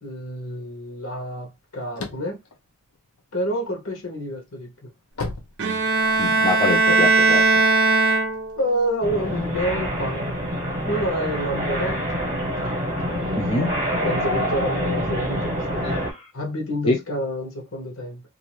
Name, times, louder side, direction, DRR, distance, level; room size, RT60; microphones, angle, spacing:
voice 1, 0.0-2.4 3.3-4.9 8.6-10.3 10.9-12.1 13.0-13.6 14.0-16.0 16.3-18.2, equal, 65° left, 1.0 m, -28 dB
sound 1, 1.7-3.6 4.1-6.4, left 3 dB, 80° left, 0.6 m, -35 dB
Bowed string instrument, 5.6-8.8, right 3 dB, 55° right, 0.5 m, -19 dB
voice 2, 6.2-7.5 13.4-13.7 16.0-16.3 16.9-17.0, left 2 dB, 25° left, 0.5 m, -24 dB
sound 2, 9.0-16.1, equal, 35° right, 0.9 m, -26 dB
2.5 x 2.4 x 3.0 m
head